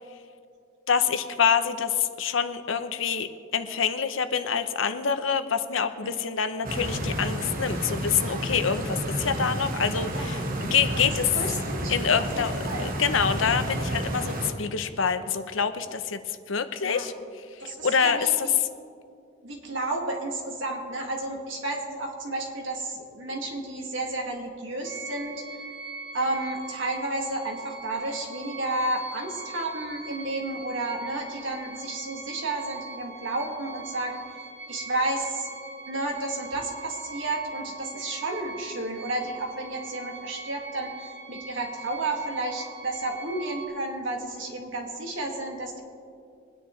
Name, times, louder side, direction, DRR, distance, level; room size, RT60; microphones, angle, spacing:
voice 1, 0.9-11.3 11.9-12.5 12.8-17.1 17.6-18.2, left 6 dB, 75° left, 10 dB, 0.8 m, -26 dB
Stream, 6.6-14.5, right 1 dB, 45° right, 1.3 m, -30 dB
voice 2, 11.3-11.9 12.3-12.9 16.8-17.1 17.6-18.4 19.4-25.7 26.1-34.2 34.7-35.5 35.9-45.8, right 2 dB, 70° right, 0 dB, 2.1 m, -32 dB
sound 1, 24.8-43.7, right 4 dB, 90° right, 3.2 m, -42 dB
22.5 x 9.9 x 3.2 m, 2.4 s
head